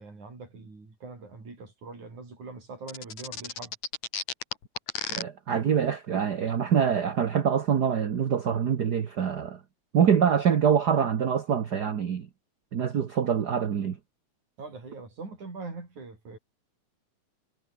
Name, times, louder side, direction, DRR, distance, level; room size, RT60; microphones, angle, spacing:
voice 1, 0.0-3.7 14.6-16.4, right 3 dB, 70° right, 8.3 m, -42 dB
sound 1, 2.9-5.2, left 6 dB, 65° left, 5.1 m, -33 dB
voice 2, 5.1-9.6 9.9-12.3 12.7-14.0, right 7 dB, 55° right, 1.1 m, -25 dB
omnidirectional pair, 3.5 m